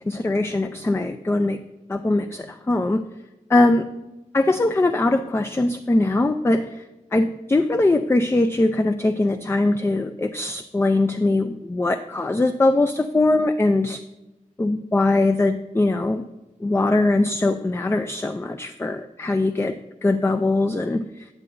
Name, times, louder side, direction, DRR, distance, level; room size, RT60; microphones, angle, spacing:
voice 1, 0.1-1.6 1.9-3.1 3.5-3.8 4.3-6.9 7.1-14.0 14.6-16.2 16.6-19.8 20.0-21.3, left 2 dB, 20° left, 8 dB, 0.3 m, -21 dB
9.6 x 7.5 x 2.5 m, 1.0 s
wide cardioid pair, 80°, 14 cm